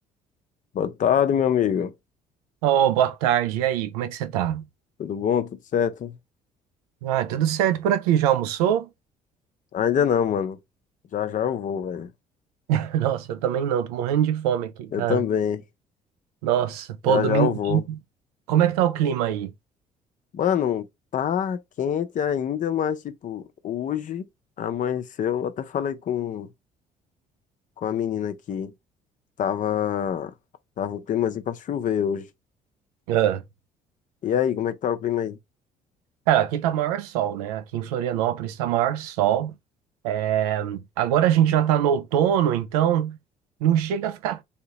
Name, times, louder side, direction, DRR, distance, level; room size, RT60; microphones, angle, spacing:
voice 1, 0.7-1.9 5.0-6.2 9.7-10.6 11.1-12.1 14.9-15.6 17.1-17.8 20.3-20.9 21.1-24.3 24.6-26.5 27.8-28.7 29.4-30.3 30.8-32.3 34.2-35.4, left 9 dB, 40° left, 0.6 m, -25 dB
voice 2, 2.6-4.7 7.0-8.9 12.7-15.2 16.4-18.0 18.5-19.5 33.1-33.4 36.3-39.6 40.0-43.2 43.6-44.4, right 10 dB, 65° right, 0.4 m, -23 dB
3.5 x 2.8 x 2.9 m
figure-of-eight pair, 50°, 20 cm